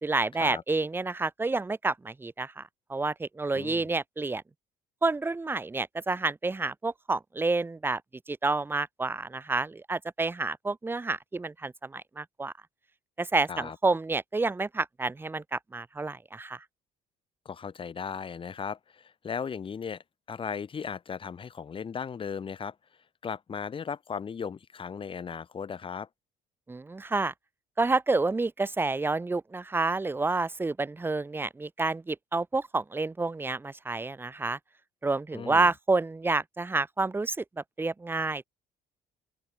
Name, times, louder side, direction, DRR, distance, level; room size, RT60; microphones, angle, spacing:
voice 1, 0.0-4.4 5.0-8.0 8.3-12.5 13.2-16.6 26.7-27.3 27.8-34.6 35.0-38.4, right 3 dB, 15° right, 0.6 m, -29 dB
voice 2, 3.5-3.9 13.5-13.8 17.4-22.7 23.2-26.1 35.3-35.7, left 6 dB, 30° left, 1.0 m, -37 dB
open air
cardioid pair, 110°, 17 cm